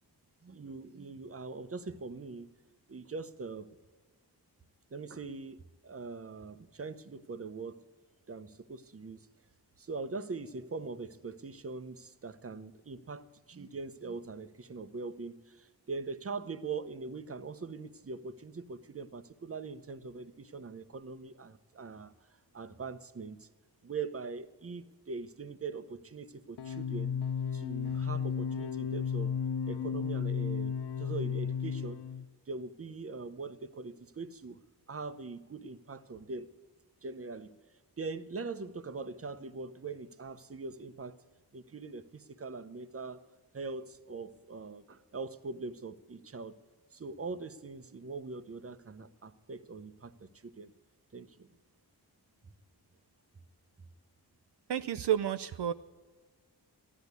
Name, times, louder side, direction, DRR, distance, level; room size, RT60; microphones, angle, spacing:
voice 1, 0.4-2.5 2.9-3.7 4.9-7.8 8.3-9.3 9.8-22.1 22.5-23.5 23.8-27.1 27.5-29.3 29.6-32.0 32.5-34.6 34.9-36.5 37.0-37.5 38.0-41.1 41.5-43.2 43.5-46.6 46.9-50.7 51.1-51.5, right 4 dB, 35° right, 12 dB, 0.8 m, -42 dB
sound 1, 26.6-32.3, left 7 dB, 75° left, 0.6 m, -34 dB
voice 2, 54.7-55.7, right 10 dB, 75° right, 10 dB, 0.5 m, -30 dB
13.5 x 10.5 x 8.1 m, 1.3 s
wide cardioid pair, 60°, 41 cm